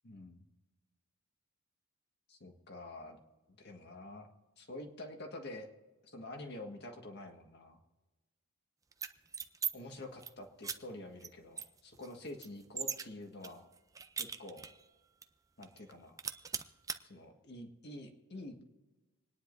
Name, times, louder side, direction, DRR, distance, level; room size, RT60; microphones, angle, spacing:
voice 1, 0.0-0.4 2.3-3.2 3.6-4.3 4.6-5.7 6.0-7.8 9.7-13.6 14.2-14.7 15.6-16.2 17.1-18.6, left 1 dB, 50° left, 3 dB, 1.7 m, -47 dB
sound 1, 8.9-9.7 10.0-10.3 10.6-10.8 11.2-11.3 11.6-13.1 13.4-14.8 15.2-15.3 15.6-15.9 16.2-17.0, right 6 dB, 15° right, 0.5 m, -39 dB
27.5 x 10.0 x 2.6 m, 1.2 s
head